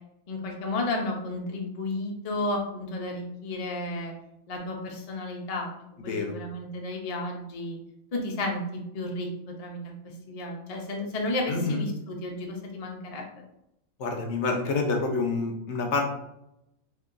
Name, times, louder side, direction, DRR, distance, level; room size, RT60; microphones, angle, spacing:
voice 1, 0.3-4.1 4.5-5.7 6.0-7.8 8.1-9.8 10.3-13.4, left 2 dB, 45° left, 0 dB, 0.5 m, -32 dB
voice 2, 6.1-6.4 11.5-11.8 14.0-16.0, left 3 dB, 70° left, 2 dB, 0.9 m, -27 dB
2.7 x 2.6 x 3.8 m, 0.84 s
omnidirectional pair, 1.3 m